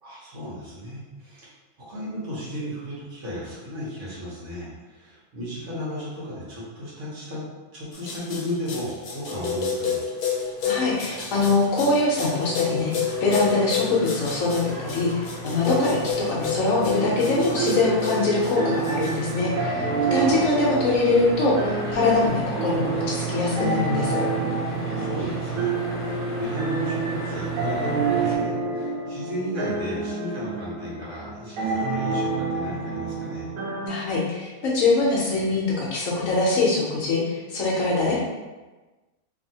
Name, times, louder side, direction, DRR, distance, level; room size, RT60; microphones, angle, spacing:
voice 1, 0.0-1.5 1.8-7.4 7.7-10.0 20.2-20.4 24.8-33.5 38.0-38.2, equal, 55° right, -8 dB, 1.2 m, -34 dB
sound 1, 7.9-19.3, left 6 dB, 85° left, 1.2 m, -30 dB
sound 2, 10.1-28.4, right 3 dB, 15° right, 0.6 m, -35 dB
voice 2, 10.6-12.9 13.2-19.9 20.1-24.2 33.9-38.2, left 3 dB, 70° left, -4 dB, 1.0 m, -23 dB
sound 3, 16.8-33.9, right 4 dB, 75° right, 1.0 m, -29 dB
2.8 x 2.7 x 2.7 m, 1.2 s
omnidirectional pair, 1.5 m